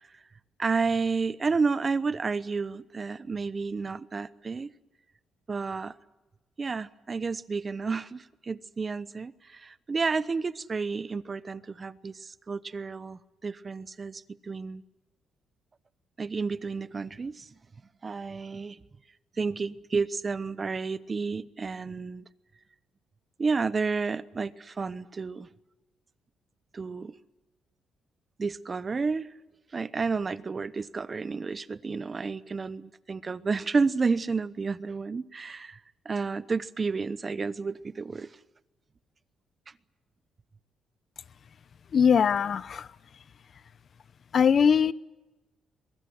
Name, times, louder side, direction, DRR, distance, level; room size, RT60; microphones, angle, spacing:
voice 1, 0.6-4.7 5.5-5.9 6.6-14.8 16.2-17.5 18.0-18.8 19.4-22.2 23.4-25.5 26.7-27.1 28.4-29.3 29.7-35.8 36.0-38.3, right 4 dB, 35° right, 0.9 m, -31 dB
voice 2, 41.9-42.9 44.3-44.9, left 7 dB, 50° left, 0.8 m, -21 dB
23.0 x 22.5 x 7.7 m
cardioid pair, 90°, 0 cm